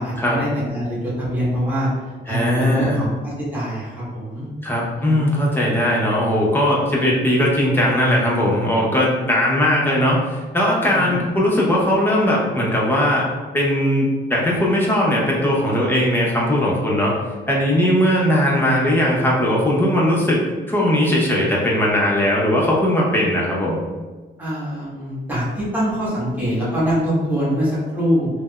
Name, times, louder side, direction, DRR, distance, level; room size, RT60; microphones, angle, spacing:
voice 1, 0.0-1.9 2.3-4.5 5.0-5.2 10.9-11.3 24.4-28.3, equal, 10° right, -8 dB, 1.2 m, -24 dB
voice 2, 2.3-3.0 4.6-13.3 13.5-17.1 17.5-20.4 20.7-23.8, equal, 10° left, -4 dB, 0.7 m, -19 dB
3.2 x 2.0 x 2.3 m, 1.3 s
cardioid pair, 90°, 20 cm